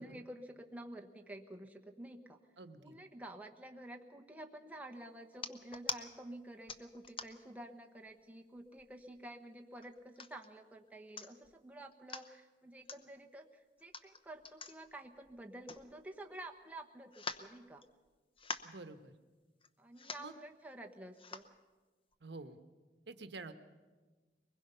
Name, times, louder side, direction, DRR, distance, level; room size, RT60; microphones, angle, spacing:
voice 1, 0.0-2.4 2.8-17.8 19.8-21.5, right 1 dB, 10° right, 2 dB, 1.1 m, -50 dB
voice 2, 2.6-2.9 18.6-19.1 20.2-20.3 22.2-22.6 23.1-23.5, right 3 dB, 75° right, 9 dB, 1.1 m, -48 dB
sound 1, 5.3-6.0 6.7-7.5 8.1-8.2 8.5-9.2 9.8-10.5 10.9-11.0 11.2-11.5 11.9-12.3 12.9-13.0 13.8-16.3 16.6-16.7 17.1-18.1 18.4-18.8 19.6-19.7 19.9-20.3 21.1-21.5 22.1-22.2, left 4 dB, 30° left, 0.8 m, -45 dB
23.0 x 20.5 x 5.6 m, 1.3 s
head